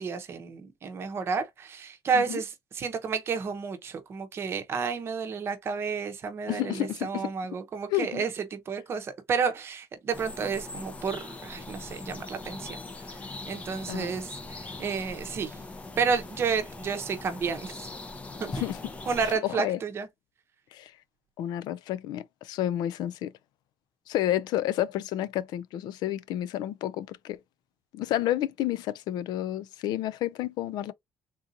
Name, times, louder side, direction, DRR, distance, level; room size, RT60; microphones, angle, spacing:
voice 1, 0.0-12.8 13.5-15.6 16.0-17.8 18.4-18.6 19.1-20.1, right 5 dB, 35° right, 0.8 m, -31 dB
voice 2, 6.5-7.3 7.9-8.2 13.9-14.1 18.6-18.8 19.4-19.8 20.7-20.9 21.4-23.3 24.1-27.4 27.9-30.9, left 13 dB, 75° left, 0.4 m, -30 dB
sound 1, 10.1-19.4, left 2 dB, 20° left, 0.6 m, -41 dB
3.7 x 2.6 x 2.6 m
cardioid pair, 170°, 7 cm